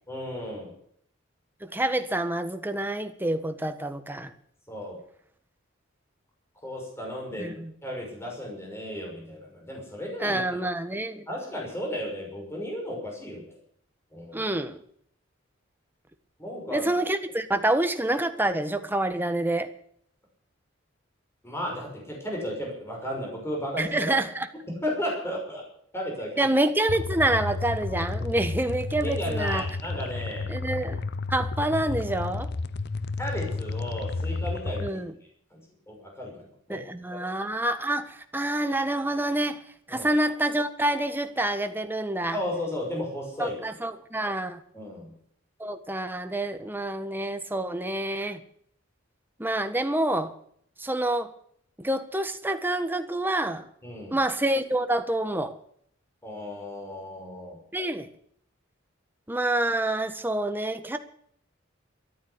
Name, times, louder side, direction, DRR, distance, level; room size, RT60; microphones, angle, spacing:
voice 1, 0.1-0.7 4.7-5.0 6.6-10.6 11.3-13.6 14.1-14.5 16.4-16.9 21.4-24.2 24.7-25.7 25.9-26.5 29.0-30.5 33.2-34.9 35.5-36.8 37.1-37.2 39.9-40.1 42.3-43.6 44.7-45.1 53.8-54.2 56.2-57.6, equal, 15° left, -1 dB, 6.0 m, -34 dB
voice 2, 1.6-4.3 7.4-7.7 10.2-11.3 14.3-14.8 16.7-19.7 23.8-24.5 26.4-29.7 30.5-32.5 34.8-35.1 36.7-42.4 43.4-44.6 45.6-48.4 49.4-50.3 50.8-51.3 51.8-53.7 54.1-55.6 57.7-58.1 59.3-61.0, right 1 dB, 10° right, 8 dB, 1.4 m, -27 dB
sound 1, 26.9-34.9, left 3 dB, 55° left, 0.6 m, -32 dB
14.0 x 11.5 x 8.1 m, 0.64 s
head